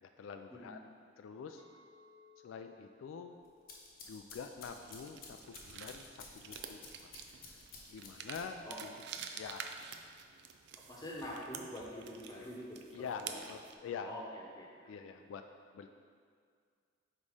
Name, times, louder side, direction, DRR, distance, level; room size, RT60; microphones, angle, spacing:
voice 1, 0.0-0.8 1.2-1.6 2.4-3.4 4.1-7.1 7.9-9.0 9.3-9.8 12.9-14.1 14.9-15.4 15.7-15.9, left 6 dB, 80° left, 6 dB, 0.3 m, -46 dB
Chink clink, 1.6-5.8, left 4 dB, 90° right, 0.8 m, -66 dB
sound 1, 3.4-8.8, left 3 dB, 50° left, 0.8 m, -53 dB
sound 2, 4.6-13.7, right 7 dB, 60° right, 0.4 m, -49 dB
voice 2, 10.7-13.4 13.8-15.0, equal, 20° left, -3 dB, 0.9 m, -46 dB
5.3 x 4.1 x 4.8 m, 2.1 s
head